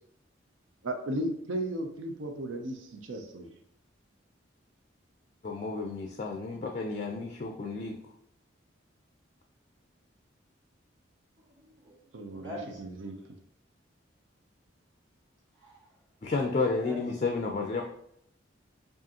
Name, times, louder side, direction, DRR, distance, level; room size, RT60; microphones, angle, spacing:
voice 1, 0.8-3.5 12.1-13.2, right 1 dB, 80° right, 4 dB, 0.5 m, -35 dB
voice 2, 5.4-8.0 16.2-17.8, left 3 dB, 35° left, 2 dB, 0.4 m, -31 dB
voice 3, 11.4-12.8 15.5-16.0 16.7-17.1, equal, 60° right, -4 dB, 1.5 m, -44 dB
4.9 x 2.5 x 2.8 m, 0.72 s
head